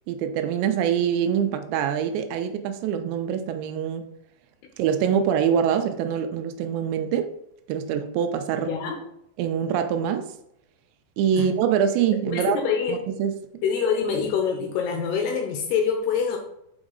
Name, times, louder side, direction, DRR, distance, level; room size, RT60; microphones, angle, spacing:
voice 1, 0.1-4.1 4.8-7.3 7.7-8.7 9.4-10.3 11.2-12.6 12.9-13.3, right 8 dB, 80° right, 7 dB, 2.8 m, -24 dB
voice 2, 8.7-9.0 11.3-11.5 12.3-13.0 13.6-16.4, left 6 dB, 80° left, 3 dB, 2.5 m, -25 dB
6.2 x 4.9 x 3.8 m, 0.78 s
omnidirectional pair, 5.2 m